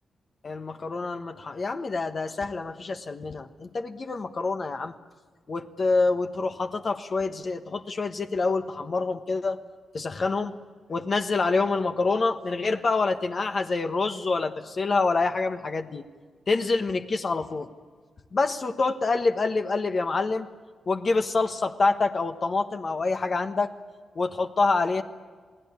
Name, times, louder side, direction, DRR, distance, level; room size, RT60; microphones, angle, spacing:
voice 1, 0.4-4.9 5.5-9.6 9.9-10.5 10.9-16.0 16.5-17.7 18.3-20.5 20.9-23.7 24.1-25.0, left 3 dB, 45° left, 6 dB, 1.3 m, -26 dB
28.0 x 18.5 x 9.7 m, 1.5 s
cardioid pair, 95°, 0 cm